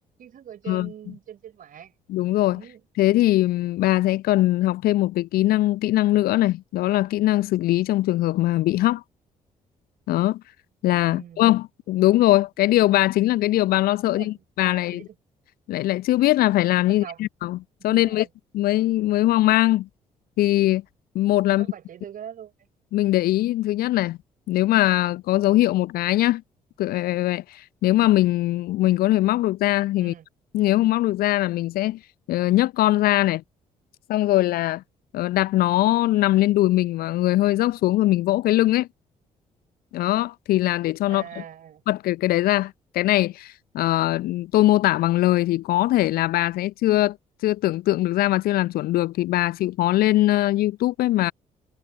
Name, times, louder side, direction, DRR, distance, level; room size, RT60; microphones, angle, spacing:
voice 1, 0.2-1.9 2.5-2.8 11.1-11.4 14.0-14.4 14.7-15.2 16.9-17.2 17.9-18.3 21.5-22.7 30.0-30.3 41.1-41.8, right 9 dB, 50° right, 4.3 m, -42 dB
voice 2, 2.1-2.6 3.0-9.0 10.1-10.4 10.8-15.0 15.7-17.6 17.8-18.3 18.5-19.9 20.4-20.8 21.1-21.7 22.9-24.2 24.5-26.4 26.8-30.1 30.5-32.0 32.3-33.4 34.1-34.8 35.1-38.9 39.9-41.2 41.9-47.2 47.4-51.3, left 16 dB, 55° left, 0.8 m, -21 dB
figure-of-eight pair, 45°, 18 cm